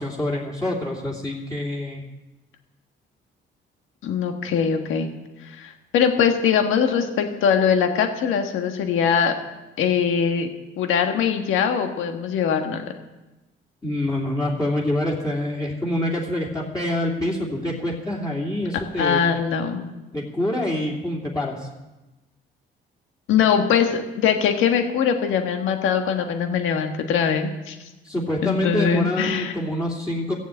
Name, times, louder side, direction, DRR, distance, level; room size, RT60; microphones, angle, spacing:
voice 1, 0.0-2.0 13.8-19.2 20.1-21.7 28.0-30.3, left 1 dB, 20° left, -4 dB, 3.0 m, -26 dB
voice 2, 4.0-5.1 5.4-9.3 9.8-10.5 10.8-12.8 19.0-19.9 23.3-27.8 28.4-29.5, left 7 dB, 85° left, 5 dB, 1.5 m, -22 dB
16.0 x 7.3 x 8.5 m, 1.1 s
cardioid pair, 90°, 20 cm